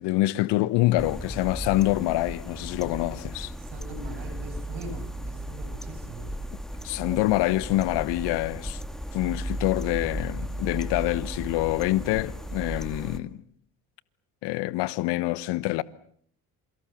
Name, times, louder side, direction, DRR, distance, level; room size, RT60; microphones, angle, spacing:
voice 1, 0.0-3.5 6.8-8.8 9.1-13.4 14.4-15.8, left 18 dB, 70° left, 1.1 m, -26 dB
sound 1, 1.0-13.2, equal, ahead, 2.6 m, -35 dB
voice 2, 3.6-6.3 7.2-7.3, right 3 dB, 70° right, 7.4 m, -41 dB
27.5 x 23.5 x 7.1 m
hypercardioid pair, 60°, 43 cm